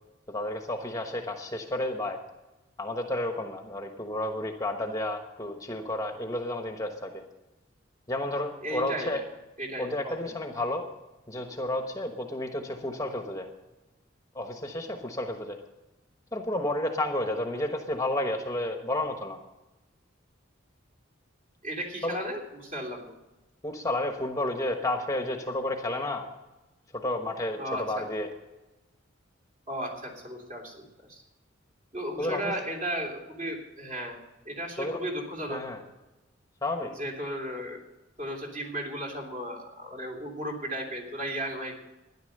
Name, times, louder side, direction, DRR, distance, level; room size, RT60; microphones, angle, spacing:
voice 1, 0.3-2.2 2.8-7.2 8.1-9.2 9.8-10.8 11.3-13.5 14.3-15.6 16.3-19.4 22.0-22.1 23.6-26.3 26.9-28.3 32.2-32.5 34.8-35.0 35.5-35.8 36.6-36.9, left 1 dB, 15° left, 4 dB, 1.1 m, -31 dB
voice 2, 8.6-9.2 9.6-10.3 21.6-23.1 27.6-27.8 29.7-31.2 31.9-34.2 34.4-35.6 36.8-37.8 38.2-41.8, right 1 dB, 40° right, 0 dB, 3.1 m, -35 dB
13.0 x 10.5 x 6.6 m, 1.1 s
head